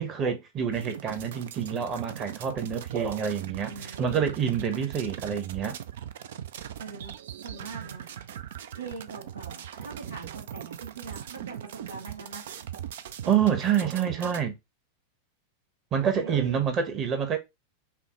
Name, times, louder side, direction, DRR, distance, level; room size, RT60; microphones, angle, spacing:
voice 1, 0.0-3.7 4.0-5.8 13.3-14.6 15.9-17.4, right 8 dB, 30° right, 1.0 m, -27 dB
sound 1, 0.7-14.4, right 10 dB, 60° right, 0.4 m, -40 dB
voice 2, 3.6-4.3 6.8-7.1 7.4-8.4 8.7-12.5 16.2-16.6, right 4 dB, 75° right, 1.5 m, -42 dB
5.5 x 2.2 x 3.0 m
figure-of-eight pair, 90°, 0 cm